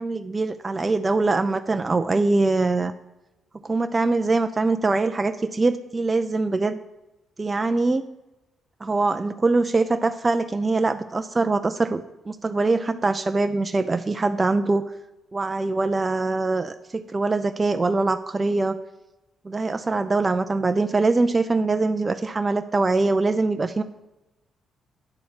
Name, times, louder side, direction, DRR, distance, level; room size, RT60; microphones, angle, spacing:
voice 1, 0.0-2.9 3.6-6.8 7.4-8.0 8.8-14.8 15.3-18.8 19.4-23.8, right 3 dB, 30° right, 8 dB, 0.5 m, -23 dB
9.8 x 4.3 x 7.5 m, 1.0 s
supercardioid pair, 55°, 0 cm